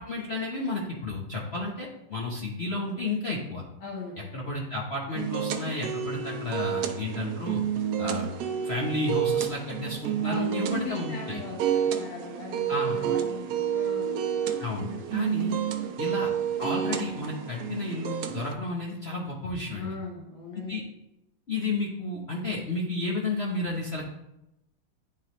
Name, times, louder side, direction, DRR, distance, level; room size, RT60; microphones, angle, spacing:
voice 1, 0.0-3.6 4.2-7.6 8.0-8.3 8.6-11.4 12.7-13.0 14.6-15.6 16.0-16.3 16.6-19.9 20.5-20.8 21.5-24.0, left 2 dB, 50° left, -4 dB, 0.7 m, -32 dB
voice 2, 3.8-4.1 10.2-14.2 14.7-15.2 15.8-15.9 19.7-20.8, left 4 dB, 75° left, -3 dB, 1.9 m, -39 dB
sound 1, 5.1-18.5, right 9 dB, 70° right, 1.0 m, -30 dB
9.9 x 3.9 x 3.0 m, 0.86 s
omnidirectional pair, 2.2 m